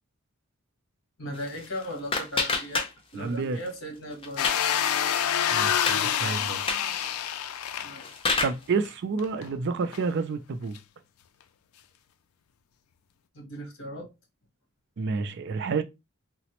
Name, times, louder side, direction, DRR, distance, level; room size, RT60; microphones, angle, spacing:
voice 1, 1.2-2.8 3.1-4.6 7.8-8.1 13.3-14.1, equal, 65° left, 1.2 m, -37 dB
sound 1, 1.3-3.4 3.7-4.7 5.1-5.2 5.6-6.0 6.5-6.9 7.7-8.7, left 4 dB, 25° left, 0.5 m, -29 dB
voice 2, 3.1-3.6 5.5-6.6 8.4-10.8 15.0-15.8, right 4 dB, 50° right, 0.4 m, -29 dB
sound 2, 4.4-8.4 8.8-8.9 9.2-9.5 9.9-10.0 10.7-10.8, left 9 dB, 80° left, 0.4 m, -27 dB
4.0 x 2.0 x 2.9 m
head